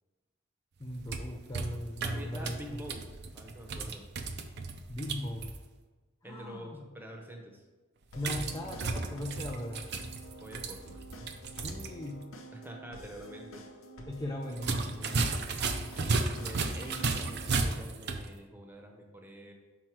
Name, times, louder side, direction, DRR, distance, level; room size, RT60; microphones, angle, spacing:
voice 1, 0.8-2.8 4.9-5.6 6.2-6.9 8.1-9.9 11.6-12.3 14.1-15.3 16.0-16.2, left 1 dB, 15° left, 0 dB, 0.5 m, -39 dB
sound 1, 0.8-5.6 8.2-11.9 12.2-12.3 14.5-18.3, right 3 dB, 55° right, 0.5 m, -34 dB
voice 2, 2.0-4.1 6.2-7.6 10.4-11.1 12.5-13.6 14.0-14.1 15.8-19.5, right 1 dB, 10° right, 1 dB, 0.9 m, -46 dB
sound 2, 8.1-17.7, right 1 dB, 85° left, 0.8 m, -49 dB
6.0 x 4.4 x 4.5 m, 1.2 s
head